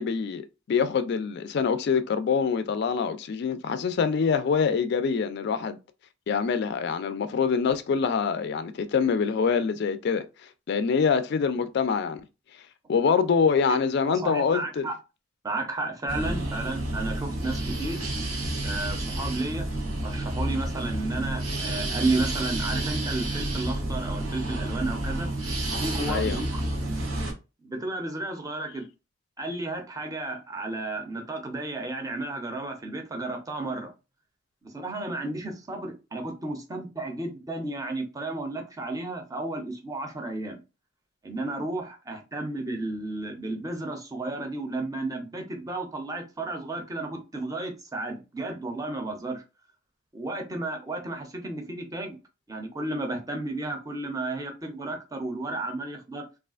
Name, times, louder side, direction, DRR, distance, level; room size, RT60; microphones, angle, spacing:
voice 1, 0.0-5.8 6.3-10.2 10.7-12.3 12.9-14.9 26.1-26.4, left 6 dB, 55° left, 0.3 m, -25 dB
voice 2, 14.0-14.9 15.4-18.0 18.6-19.7 20.0-25.3 25.8-26.6 27.6-28.9 29.4-33.9 34.6-40.6 41.2-49.4 50.1-52.2 52.5-56.2, right 2 dB, 15° right, 0.6 m, -32 dB
sound 1, 16.1-27.3, right 1 dB, 90° right, 0.9 m, -30 dB
3.2 x 2.4 x 2.4 m
head